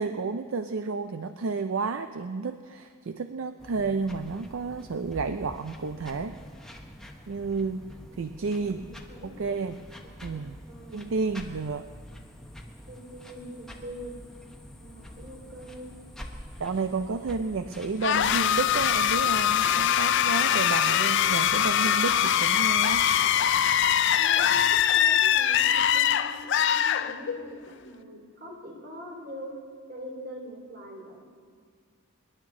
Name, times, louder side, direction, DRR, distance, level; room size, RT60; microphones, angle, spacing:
voice 1, 0.0-6.3 7.3-7.9 8.2-8.9 9.2-9.8 10.2-10.6 10.9-11.9 16.6-23.1, right 4 dB, 65° right, 9 dB, 0.4 m, -31 dB
sound 1, 3.6-19.9, equal, ahead, 0.9 m, -46 dB
voice 2, 8.4-9.4 10.0-11.1 12.9-14.2 14.8-15.9 24.1-26.3 26.7-29.5 29.9-31.5, equal, 45° right, -1 dB, 2.8 m, -43 dB
sound 2, 18.0-27.6, left 9 dB, 55° left, 0.4 m, -23 dB
24.0 x 11.0 x 3.7 m, 2.1 s
head